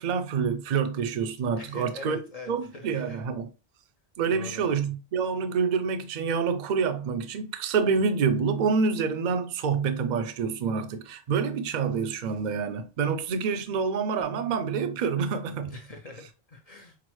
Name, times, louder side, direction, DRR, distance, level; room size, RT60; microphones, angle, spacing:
voice 1, 0.0-2.2 2.5-3.5 4.2-15.7, right 5 dB, 55° right, 0.6 m, -27 dB
voice 2, 1.6-3.3 4.3-4.6 15.7-17.0, left 2 dB, 45° left, 0.6 m, -43 dB
5.9 x 2.0 x 3.0 m
omnidirectional pair, 1.1 m